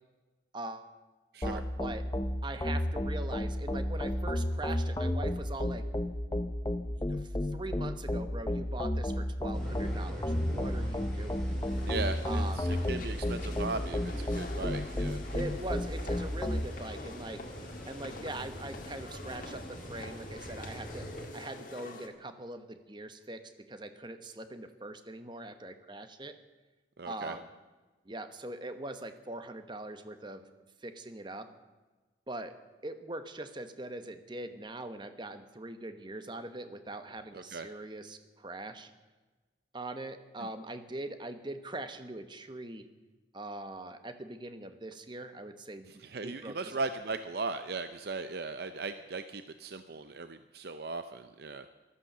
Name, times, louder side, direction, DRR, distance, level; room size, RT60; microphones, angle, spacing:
voice 1, 0.5-0.9 1.4-2.0 2.4-5.8 6.9-11.4 12.2-12.7 15.3-17.4 17.9-21.1 21.3-26.4 27.0-27.5 28.0-30.4 30.8-31.5 32.3-32.5 32.8-38.9 39.7-42.9 43.3-45.9 46.2-46.8, right 2 dB, 25° right, 9 dB, 1.0 m, -42 dB
sound 1, 1.4-16.7, left 1 dB, 20° left, 0.6 m, -32 dB
sound 2, 9.5-21.3, equal, 5° left, 4.7 m, -44 dB
sound 3, 11.7-22.1, left 2 dB, 45° left, 1.6 m, -47 dB
voice 2, 11.9-15.2 27.0-27.4 37.3-37.7 45.9-51.7, right 3 dB, 55° right, 10 dB, 0.6 m, -38 dB
15.0 x 13.0 x 6.7 m, 1.2 s
head